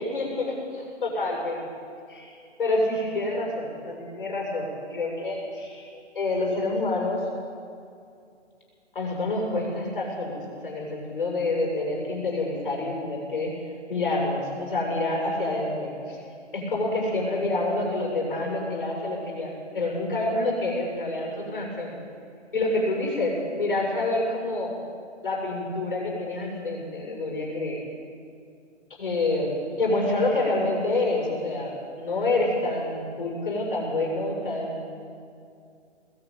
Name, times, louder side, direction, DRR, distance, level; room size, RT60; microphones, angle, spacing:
voice 1, 0.0-1.6 2.1-2.3 2.6-5.9 6.1-7.2 8.9-13.5 13.9-16.2 16.5-22.0 22.5-24.7 25.2-27.8 29.0-34.8, left 2 dB, 45° left, -1 dB, 7.3 m, -27 dB
20.0 x 14.5 x 9.3 m, 2.5 s
hypercardioid pair, 170°, 36 cm